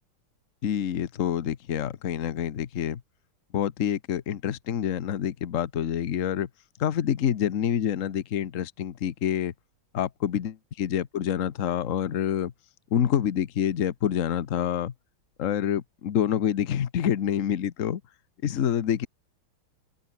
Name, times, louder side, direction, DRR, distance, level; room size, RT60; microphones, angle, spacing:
voice 1, 0.6-3.0 3.5-6.5 6.8-9.5 9.9-12.5 12.9-14.9 15.4-18.0 18.4-19.1, left 9 dB, 45° left, 1.1 m, -27 dB
open air
omnidirectional pair, 2.4 m